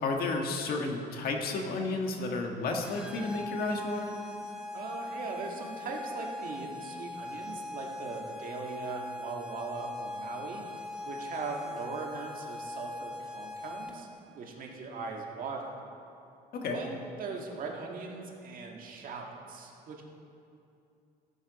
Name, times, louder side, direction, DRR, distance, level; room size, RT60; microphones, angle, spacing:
voice 1, 0.0-4.2 16.5-16.8, left 3 dB, 65° left, 2 dB, 1.5 m, -32 dB
sound 1, 2.8-14.2, left 2 dB, 5° right, 1.2 m, -41 dB
voice 2, 4.7-10.7 11.0-14.1 14.3-15.8 16.7-20.0, right 4 dB, 55° right, 0 dB, 1.7 m, -40 dB
14.5 x 8.8 x 4.1 m, 2.6 s
cardioid pair, 110°, 17 cm